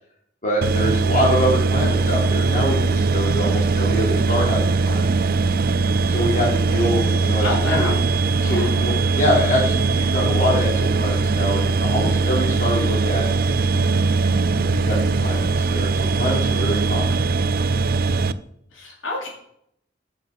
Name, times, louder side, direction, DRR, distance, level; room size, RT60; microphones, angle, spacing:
voice 1, 0.4-5.1 6.1-7.9 8.4-13.8 14.2-17.2, equal, 40° left, -3 dB, 3.4 m, -25 dB
sound 1, 0.6-18.3, right 4 dB, 50° right, 0.4 m, -20 dB
voice 2, 7.4-8.0 8.4-8.8 18.7-19.3, left 2 dB, 85° left, -2 dB, 3.4 m, -28 dB
7.0 x 7.0 x 6.6 m, 0.73 s
head